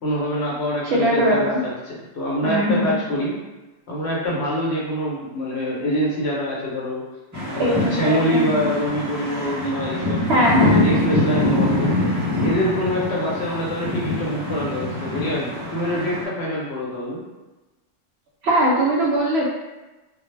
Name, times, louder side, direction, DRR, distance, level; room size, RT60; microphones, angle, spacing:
voice 1, 0.0-3.3 3.9-7.0 7.5-10.3 10.7-11.9 12.4-17.2, equal, 60° left, -5 dB, 0.9 m, -25 dB
voice 2, 0.9-1.6 2.4-2.9 7.6-8.6 10.3-10.9 18.4-19.5, equal, 65° right, -4 dB, 0.7 m, -20 dB
sound 1, 7.3-16.3, left 2 dB, 25° right, 0.4 m, -24 dB
2.2 x 2.0 x 3.1 m, 1.1 s
omnidirectional pair, 1.3 m